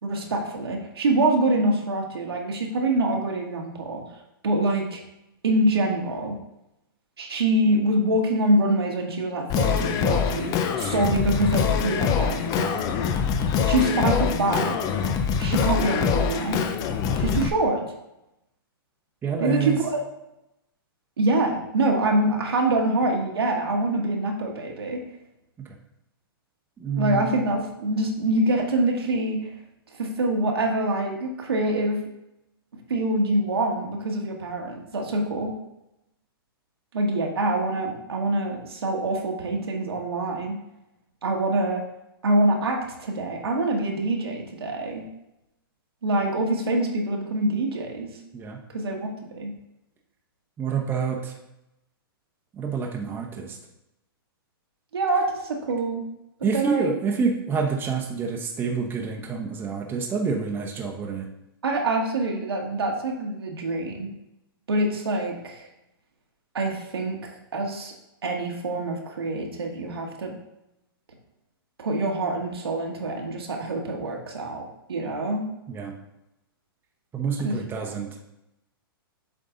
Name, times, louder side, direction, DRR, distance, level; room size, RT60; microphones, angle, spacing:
voice 1, 0.0-4.0 4.4-5.0 5.4-6.4 7.2-12.8 13.7-14.8 15.4-16.6 17.2-17.8 19.4-19.9 21.2-25.0 27.0-29.4 30.0-32.0 32.9-35.5 36.9-40.6 41.2-41.8 42.2-45.0 46.0-48.1 48.7-49.1 49.3-49.5 54.9-56.0 56.5-56.9 61.6-64.1 64.7-65.7 66.5-67.2 67.5-67.9 68.2-70.3 71.8-74.6 74.9-75.5 77.4-78.1, right 2 dB, 85° right, 1 dB, 1.5 m, -25 dB
Singing, 9.5-17.5, left 6 dB, 30° left, 0.6 m, -24 dB
voice 2, 19.2-19.8 25.6-25.8 26.8-27.3 48.3-48.6 50.6-51.3 52.5-53.6 56.4-61.3 75.7-75.9 77.1-78.2, right 5 dB, 15° right, 0 dB, 0.9 m, -27 dB
7.7 x 3.8 x 3.8 m, 0.88 s
hypercardioid pair, 125°, 13 cm